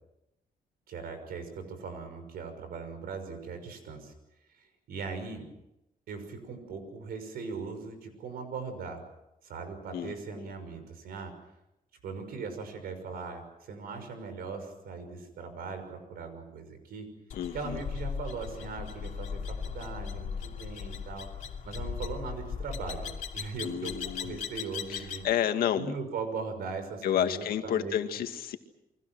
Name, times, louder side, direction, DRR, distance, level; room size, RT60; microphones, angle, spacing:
voice 1, 0.9-4.1 4.5-5.5 6.1-9.0 9.4-11.3 12.0-17.1 17.5-21.3 21.6-25.2 25.8-28.0, right 5 dB, 90° right, 8 dB, 6.0 m, -39 dB
voice 2, 9.9-10.4 17.3-17.8 23.6-24.4 24.9-25.9 27.0-28.6, left 10 dB, 90° left, 7 dB, 2.0 m, -31 dB
sound 1, 17.3-25.3, left 7 dB, 50° left, 2.6 m, -38 dB
29.5 x 24.0 x 6.3 m, 0.89 s
wide cardioid pair, 175°, 15 cm